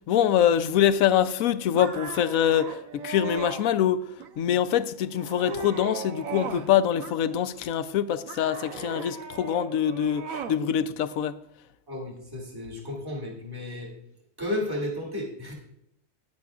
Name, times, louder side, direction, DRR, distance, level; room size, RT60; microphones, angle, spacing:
voice 1, 0.1-4.1 4.4-11.4, left 10 dB, 85° left, 1.0 m, -24 dB
sound 1, 1.7-3.6 4.2-4.7 5.1-6.7 7.0-7.7 8.3-10.6, right 5 dB, 85° right, 1.3 m, -38 dB
voice 2, 11.9-13.9 14.4-15.5, left 1 dB, 15° right, 2.0 m, -33 dB
14.5 x 9.9 x 2.4 m
omnidirectional pair, 1.4 m